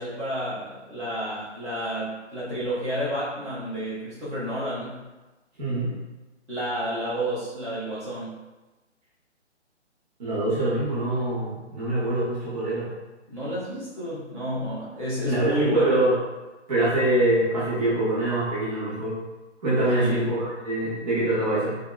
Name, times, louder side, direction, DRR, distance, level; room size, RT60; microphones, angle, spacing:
voice 1, 0.0-5.0 6.5-8.4 13.3-16.0 19.9-20.3, equal, 70° right, -10 dB, 1.3 m, -30 dB
voice 2, 5.6-6.0 10.2-12.9 15.2-16.2 16.7-19.2 19.6-21.8, right 1 dB, 35° right, -9 dB, 0.8 m, -24 dB
3.5 x 2.1 x 2.2 m, 1.1 s
figure-of-eight pair, 140°, 36 cm